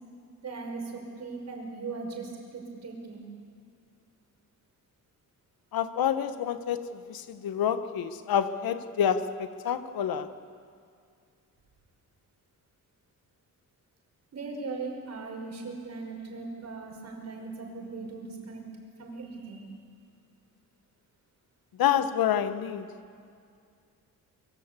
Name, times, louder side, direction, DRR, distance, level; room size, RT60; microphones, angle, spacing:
voice 1, 0.4-3.3 14.3-18.6 19.0-19.6, right 4 dB, 45° right, 1 dB, 5.7 m, -39 dB
voice 2, 5.7-6.8 7.1-10.3 21.8-22.8, left 9 dB, 75° left, 11 dB, 1.3 m, -28 dB
24.0 x 23.5 x 8.3 m, 2.3 s
cardioid pair, 140°, 36 cm